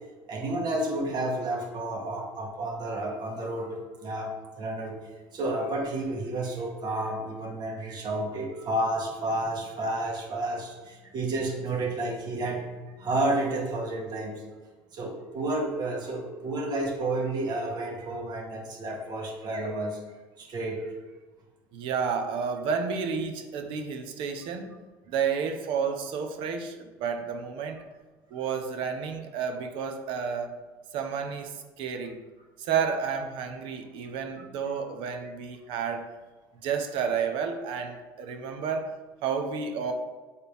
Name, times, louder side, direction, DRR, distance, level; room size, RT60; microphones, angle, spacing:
voice 1, 0.3-5.0 5.3-12.6 13.0-14.4 14.9-20.0 20.4-20.9, right 1 dB, 50° right, 0 dB, 1.8 m, -31 dB
voice 2, 21.7-24.7 25.1-27.8 28.3-30.5 30.9-32.2 32.6-36.1 36.6-38.9 39.2-39.9, right 6 dB, 70° right, 6 dB, 1.0 m, -31 dB
8.8 x 4.2 x 3.6 m, 1.3 s
supercardioid pair, 90°, 9 cm